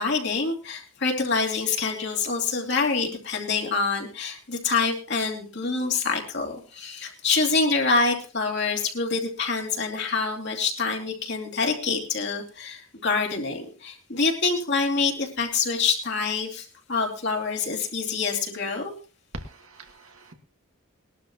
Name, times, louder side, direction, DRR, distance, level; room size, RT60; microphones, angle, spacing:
voice 1, 0.0-18.9, left 4 dB, 55° left, 1 dB, 2.9 m, -26 dB
voice 2, 19.3-20.3, right 1 dB, 90° right, 5 dB, 1.9 m, -41 dB
20.5 x 12.0 x 3.0 m, 0.36 s
head